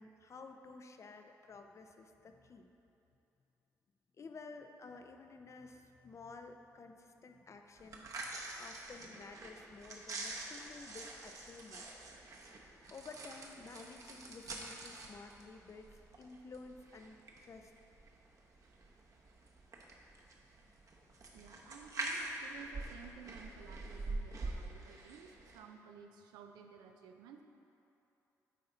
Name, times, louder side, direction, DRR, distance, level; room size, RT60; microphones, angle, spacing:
voice 1, 0.0-2.7 4.2-8.0 8.6-11.9 12.9-15.9 16.2-17.7, left 4 dB, 45° left, 6 dB, 0.6 m, -52 dB
sound 1, 7.8-25.6, right 2 dB, 50° right, 0.9 m, -46 dB
voice 2, 21.3-27.4, right 6 dB, 85° right, 5 dB, 0.5 m, -54 dB
8.3 x 4.3 x 3.9 m, 2.9 s
supercardioid pair, 55°, 7 cm